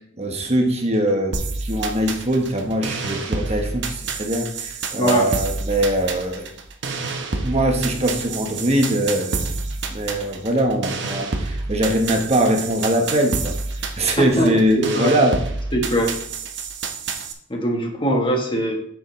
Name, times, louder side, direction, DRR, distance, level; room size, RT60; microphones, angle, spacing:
voice 1, 0.2-6.5 7.3-9.6 9.9-13.5 14.0-15.4, right 1 dB, 35° right, 3 dB, 1.2 m, -22 dB
sound 1, 1.3-17.3, right 3 dB, 60° right, 1.0 m, -29 dB
voice 2, 14.2-15.1 15.7-16.1 17.5-18.7, equal, 25° left, 2 dB, 1.4 m, -22 dB
9.1 x 7.1 x 3.2 m, 0.68 s
head